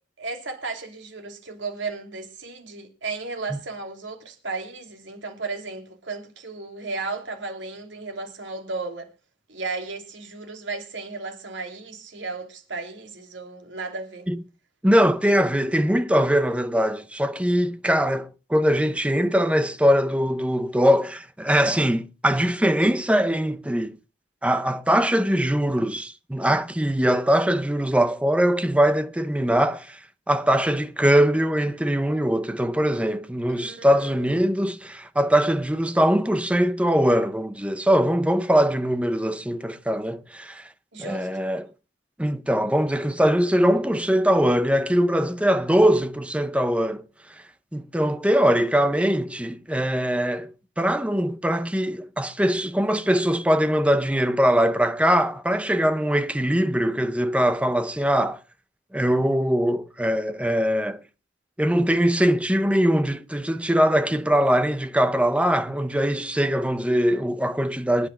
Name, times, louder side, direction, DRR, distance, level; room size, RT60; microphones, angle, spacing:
voice 1, 0.2-9.1 9.5-14.3 33.5-34.4 40.9-41.4, right 3 dB, 80° right, 3.0 m, -34 dB
voice 2, 14.8-24.0 24.4-30.0 30.3-40.7 41.0-41.7 42.2-47.0 47.3-47.4 47.7-58.4 58.9-61.0 61.6-68.1, equal, 5° right, 0.6 m, -22 dB
25.5 x 9.6 x 2.3 m
head